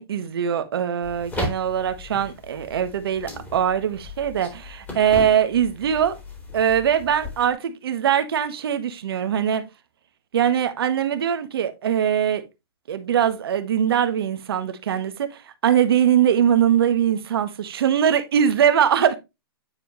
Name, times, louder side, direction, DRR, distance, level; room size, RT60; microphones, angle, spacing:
voice 1, 0.0-6.2 6.5-9.6 10.3-12.4 12.9-19.2, right 9 dB, 70° right, 1.5 m, -22 dB
sound 1, 1.0-7.5, left 2 dB, 15° left, 3.3 m, -36 dB
9.7 x 4.6 x 3.1 m
hypercardioid pair, 130°, 13 cm